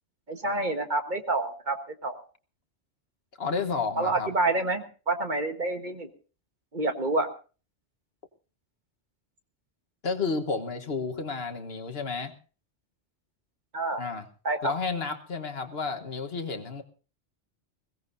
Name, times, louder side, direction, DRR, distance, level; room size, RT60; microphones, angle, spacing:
voice 1, 0.3-2.2 3.9-6.1 6.7-7.3 13.7-14.0 14.4-14.7, right 2 dB, 45° right, 6 dB, 1.5 m, -28 dB
voice 2, 3.4-4.3 10.0-12.3 14.0-14.3 14.6-16.8, left 4 dB, 60° left, 6 dB, 1.5 m, -31 dB
21.5 x 16.5 x 2.6 m, 0.36 s
omnidirectional pair, 1.2 m